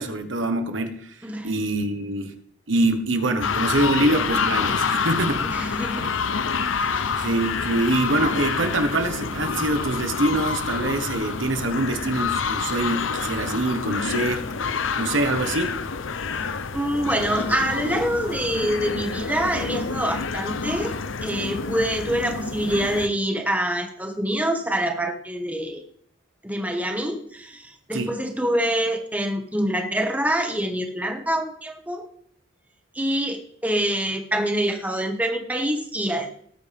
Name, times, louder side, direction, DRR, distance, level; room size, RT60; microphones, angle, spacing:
voice 1, 0.0-1.1 1.4-2.3 2.7-5.8 6.9-14.5 14.9-15.8 27.9-28.1, right 2 dB, 75° right, 7 dB, 1.4 m, -24 dB
voice 2, 1.2-1.5 5.4-6.2 6.7-7.1 16.7-25.8 26.4-32.1 32.9-36.4, right 1 dB, 10° right, 3 dB, 1.7 m, -26 dB
sound 1, 3.4-23.1, left 5 dB, 80° left, 0.8 m, -27 dB
19.0 x 8.8 x 3.6 m, 0.66 s
head